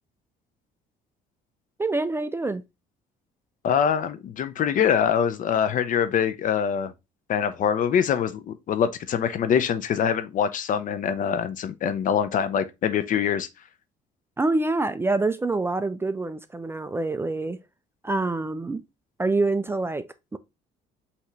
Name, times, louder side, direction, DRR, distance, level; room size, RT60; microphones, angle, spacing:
voice 1, 1.8-2.6 14.4-17.6 18.0-18.8 19.2-20.4, right 2 dB, 15° right, 0.3 m, -26 dB
voice 2, 3.6-6.9 7.3-13.5, left 8 dB, 50° left, 0.6 m, -24 dB
5.8 x 2.9 x 3.0 m
cardioid pair, 110°, 17 cm